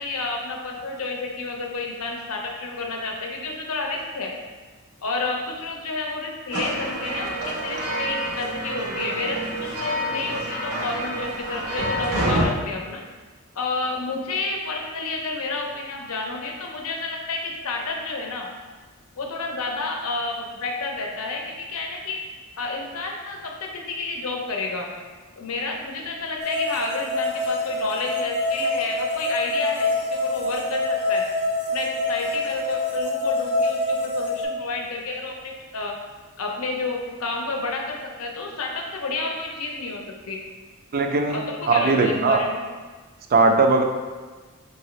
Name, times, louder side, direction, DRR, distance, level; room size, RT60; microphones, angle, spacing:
voice 1, 0.0-4.3 5.0-13.0 13.5-18.5 19.2-22.2 22.6-24.9 25.4-31.3 31.7-35.9 36.4-40.4 41.3-42.7, left 3 dB, 70° left, 1 dB, 0.6 m, -30 dB
sound 1, 6.5-12.4, right 1 dB, 80° right, 0.7 m, -28 dB
sound 2, 26.4-34.4, left 2 dB, 25° left, 0.7 m, -26 dB
voice 2, 40.9-41.4 41.7-42.4 43.3-43.8, right 3 dB, 45° right, 4 dB, 0.4 m, -19 dB
4.8 x 2.7 x 3.1 m, 1.4 s
head